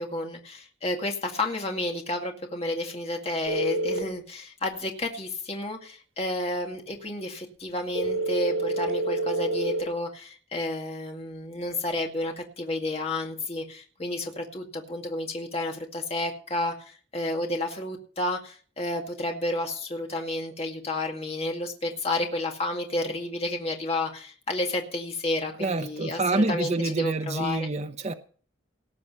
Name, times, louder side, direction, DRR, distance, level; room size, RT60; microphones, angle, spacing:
voice 1, 0.0-27.7, left 2 dB, 30° left, 2 dB, 2.1 m, -31 dB
sound 1, 3.5-4.0 7.9-9.8, right 2 dB, 85° right, 3.2 m, -27 dB
voice 2, 25.6-28.1, right 2 dB, 35° right, 7 dB, 0.9 m, -27 dB
19.0 x 7.4 x 5.7 m, 0.41 s
head